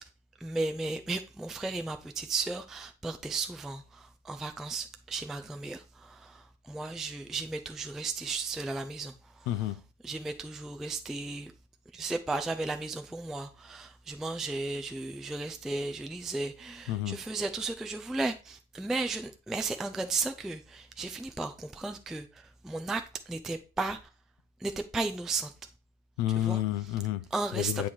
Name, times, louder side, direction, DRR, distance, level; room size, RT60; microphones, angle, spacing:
voice 1, 0.4-9.5 10.0-11.5 11.9-24.0 24.6-25.5 26.4-26.6 27.3-27.9, right 3 dB, ahead, 0.4 m, -35 dB
voice 2, 9.5-9.8 16.9-17.2 26.2-27.9, left 13 dB, 40° left, 0.7 m, -30 dB
8.4 x 3.3 x 5.8 m
figure-of-eight pair, 70°, 41 cm